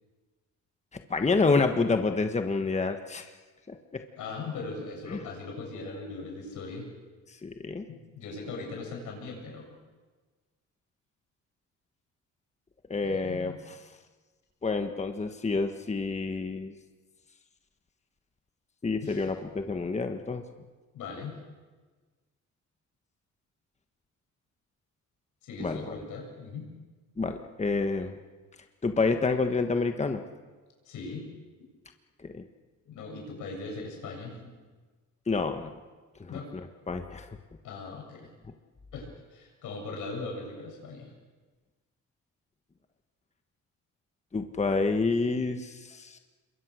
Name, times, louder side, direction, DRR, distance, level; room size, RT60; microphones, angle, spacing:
voice 1, 0.9-3.3 3.7-4.0 5.1-5.2 7.4-7.9 12.9-13.8 14.6-16.7 18.8-20.4 25.6-26.0 27.2-28.2 28.8-30.2 32.2-32.4 35.3-35.8 36.2-37.4 44.3-46.2, left 3 dB, 20° left, 6 dB, 1.4 m, -28 dB
voice 2, 4.2-6.9 7.9-9.8 13.0-13.6 19.0-19.3 20.9-21.4 25.4-26.7 30.9-31.3 32.9-34.5 36.3-36.5 37.6-38.3 38.9-41.1, left 3 dB, 85° left, 1 dB, 7.7 m, -39 dB
27.0 x 22.5 x 6.4 m, 1.4 s
cardioid pair, 90°, 30 cm